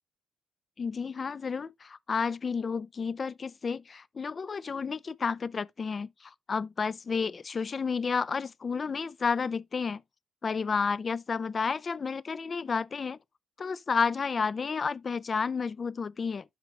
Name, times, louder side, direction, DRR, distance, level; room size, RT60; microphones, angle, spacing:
voice 1, 0.8-10.0 10.4-13.2 13.6-16.4, left 5 dB, 40° left, 0.4 m, -31 dB
11.0 x 5.8 x 2.4 m
cardioid pair, 90°, 0 cm